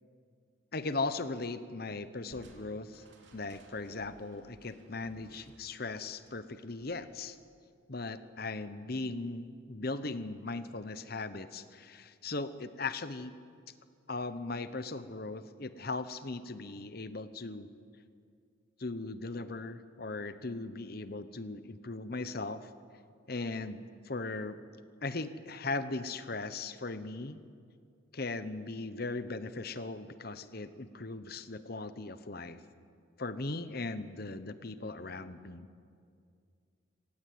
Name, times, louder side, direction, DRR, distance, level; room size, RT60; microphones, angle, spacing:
voice 1, 0.7-3.0 3.3-7.4 7.9-13.3 14.1-17.7 18.8-22.7 23.3-24.6 25.0-27.4 28.1-32.6 33.2-35.7, left 3 dB, 50° left, 12 dB, 1.0 m, -38 dB
Crushing, 2.3-7.7, right 1 dB, 60° right, 3.2 m, -60 dB
25.5 x 17.5 x 8.6 m, 2.3 s
head